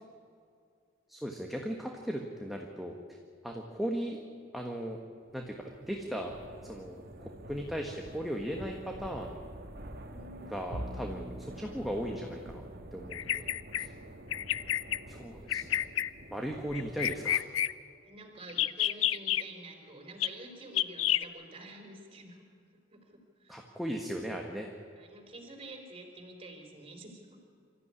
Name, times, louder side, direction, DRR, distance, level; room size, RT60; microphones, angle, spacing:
voice 1, 1.1-3.2 3.4-4.2 4.5-5.0 5.3-5.5 5.8-6.3 6.6-9.4 10.5-12.6 12.9-13.5 13.8-13.9 15.1-15.9 16.3-17.4 23.5-24.7, equal, ahead, 1 dB, 1.5 m, -37 dB
sound 1, 5.3-17.4, right 1 dB, 50° right, 1.8 m, -48 dB
voice 2, 10.0-10.5 18.0-22.4 22.9-23.6 25.0-27.3, right 2 dB, 30° right, 3 dB, 4.3 m, -48 dB
Bowed string instrument, 10.7-17.2, equal, 85° right, 1.8 m, -48 dB
Bird vocalization bird call bird song, 13.1-13.9 14.3-15.0 15.5-16.1 16.7-17.7 18.5-19.4 20.2-20.3 20.7-21.2, left 12 dB, 80° left, 0.6 m, -29 dB
26.0 x 14.0 x 9.9 m, 2.3 s
head